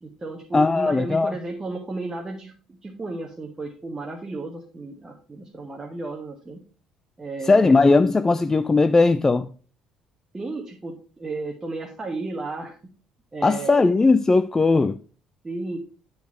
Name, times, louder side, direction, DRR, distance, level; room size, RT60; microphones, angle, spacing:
voice 1, 0.0-6.6 7.2-7.8 10.3-12.8 13.3-13.8 15.4-15.8, right 3 dB, 20° right, 1.3 m, -33 dB
voice 2, 0.5-1.3 7.5-9.5 13.4-15.0, left 3 dB, 20° left, 0.4 m, -18 dB
9.6 x 4.1 x 4.4 m
figure-of-eight pair, 50°, 2 cm